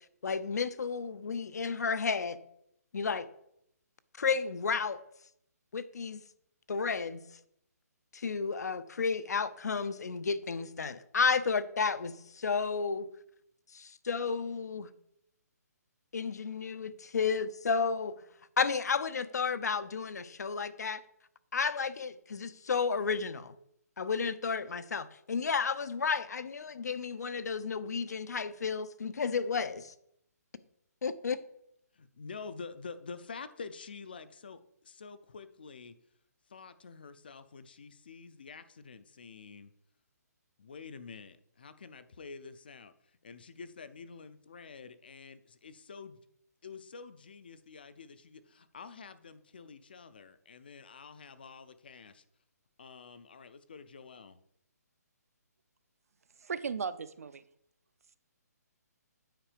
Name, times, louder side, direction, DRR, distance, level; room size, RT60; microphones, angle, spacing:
voice 1, 0.2-2.4 2.9-3.3 4.2-5.0 5.7-6.2 6.7-7.2 8.1-13.1 13.7-14.9 16.1-18.2 18.6-21.0 21.5-23.5 24.0-29.9 31.0-31.4, left 5 dB, 75° left, 14 dB, 0.7 m, -32 dB
voice 2, 31.9-36.0 36.5-39.7 40.6-46.2 46.6-52.2 52.8-54.4, left 5 dB, 35° left, 13 dB, 0.5 m, -48 dB
voice 3, 56.4-57.4, right 5 dB, 60° right, 14 dB, 0.5 m, -36 dB
9.0 x 4.6 x 5.0 m, 0.74 s
hypercardioid pair, 180°, 9 cm